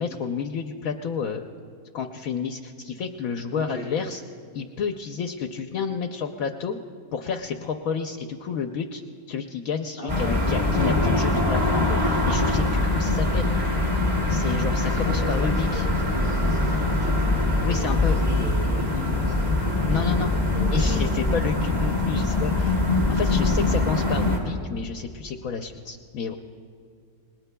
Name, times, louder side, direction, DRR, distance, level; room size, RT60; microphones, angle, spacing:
voice 1, 0.0-1.5 1.9-4.2 4.5-6.8 7.1-9.0 9.3-13.7 14.3-15.9 17.6-18.2 19.9-20.3 20.7-22.8 23.1-26.4, left 6 dB, 70° left, 5 dB, 1.1 m, -30 dB
voice 2, 3.5-3.9 10.0-10.9 14.8-20.3 20.5-21.0, equal, 75° right, -6 dB, 3.9 m, -35 dB
sound 1, 10.1-24.4, left 2 dB, 15° right, 2.5 m, -23 dB
29.0 x 19.5 x 2.3 m, 2.4 s
omnidirectional pair, 1.6 m